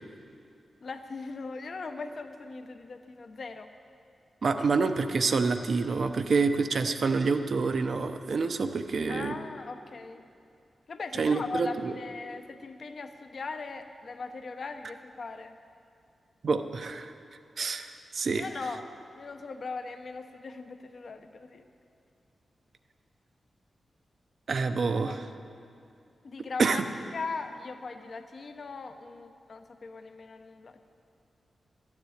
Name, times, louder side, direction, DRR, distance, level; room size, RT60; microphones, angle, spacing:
voice 1, 0.8-3.7 9.1-10.2 10.9-15.6 18.3-18.8 19.2-21.7 25.0-25.2 26.2-26.8 27.1-30.8, left 4 dB, 50° left, 7 dB, 0.7 m, -39 dB
voice 2, 4.4-9.3 11.2-11.9 16.4-17.1 17.6-17.9 18.1-18.5 24.5-25.2 26.6-26.8, right 4 dB, 55° right, 8 dB, 0.7 m, -27 dB
13.0 x 7.3 x 9.8 m, 2.5 s
wide cardioid pair, 125°, 0 cm